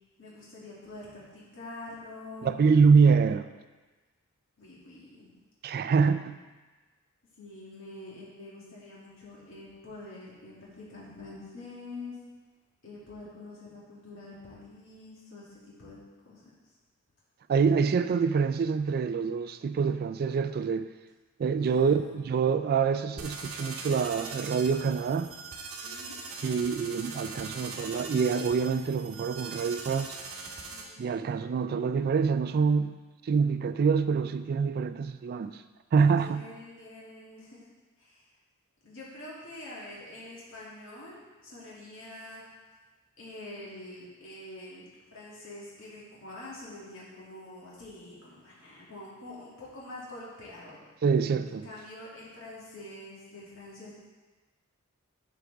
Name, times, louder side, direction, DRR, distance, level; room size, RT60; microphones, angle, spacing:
voice 1, 0.2-2.5 4.6-5.3 7.4-12.2 12.8-16.0 16.2-16.4 21.6-22.2 25.8-26.2 30.7-31.0 36.0-37.7 38.0-38.2 38.8-42.4 43.2-44.8 45.1-50.8 51.4-54.0, left 2 dB, 65° left, -7 dB, 2.4 m, -46 dB
voice 2, 2.4-3.5 5.6-6.4 17.5-20.9 21.4-25.3 26.4-30.2 31.0-33.0 33.2-35.6 35.9-36.4 51.0-51.7, right 5 dB, 45° right, 12 dB, 0.3 m, -25 dB
sound 1, 23.2-30.8, right 4 dB, 75° right, 1.2 m, -41 dB
11.0 x 5.2 x 3.4 m, 1.3 s
head